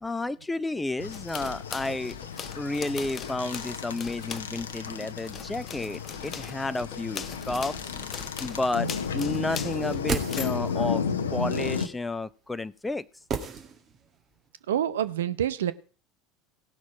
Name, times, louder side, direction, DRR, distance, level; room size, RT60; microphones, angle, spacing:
voice 1, 0.0-2.2 2.5-7.9 8.4-8.9 9.1-11.0 11.3-13.0, left 2 dB, 10° left, 17 dB, 0.5 m, -31 dB
sound 1, 1.0-11.9, left 6 dB, 80° left, 0.9 m, -33 dB
sound 2, 1.1-4.8 5.2-10.6, left 6 dB, 35° left, 0.9 m, -40 dB
sound 3, 9.7-10.9 13.3-14.2 14.5-14.6, right 6 dB, 40° right, 1.9 m, -34 dB
voice 2, 14.7-15.7, right 10 dB, 75° right, 14 dB, 0.6 m, -27 dB
17.0 x 6.2 x 4.9 m, 0.39 s
figure-of-eight pair, 75°, 0 cm